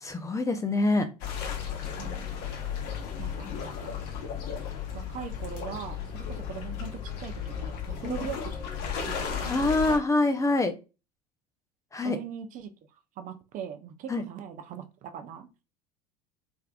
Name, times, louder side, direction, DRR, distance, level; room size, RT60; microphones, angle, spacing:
voice 1, 0.0-1.1 8.0-8.2 9.5-10.8 11.9-12.2 14.1-14.2, left 2 dB, 15° left, 7 dB, 0.5 m, -25 dB
sound 1, 1.2-10.0, left 7 dB, 55° left, 1.0 m, -35 dB
voice 2, 2.0-2.4 3.2-4.0 4.9-8.5 8.9-10.0 12.0-12.7 13.2-15.5, right 8 dB, 40° right, 8 dB, 0.6 m, -41 dB
3.4 x 3.3 x 2.4 m, 0.29 s
hypercardioid pair, 75°, 20 cm